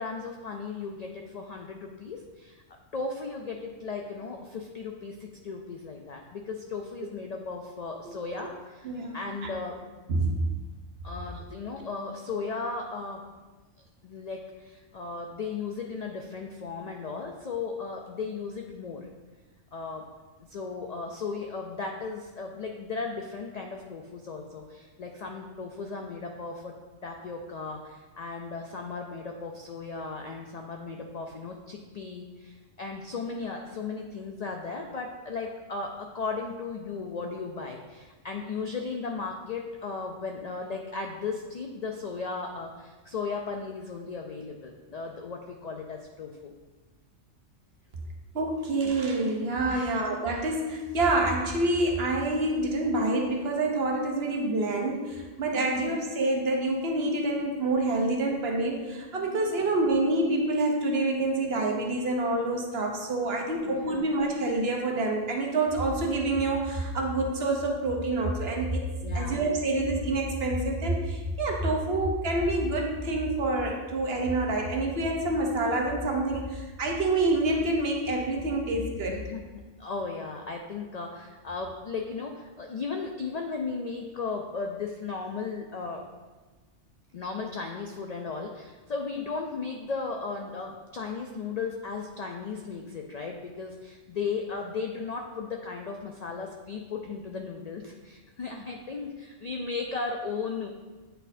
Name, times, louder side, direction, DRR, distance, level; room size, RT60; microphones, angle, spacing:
voice 1, 0.0-9.8 11.0-13.2 14.0-19.1 19.7-20.1 20.4-26.7 27.0-46.5 49.7-50.0 55.5-55.8 59.3-59.5 63.6-64.1 69.0-69.4 79.1-86.1 87.1-100.7, left 4 dB, 80° left, 2 dB, 0.3 m, -36 dB
voice 2, 8.8-9.5 10.1-10.4 48.3-68.8 69.1-79.2, right 2 dB, 55° right, 1 dB, 1.0 m, -27 dB
8.8 x 4.2 x 2.6 m, 1.3 s
omnidirectional pair, 1.3 m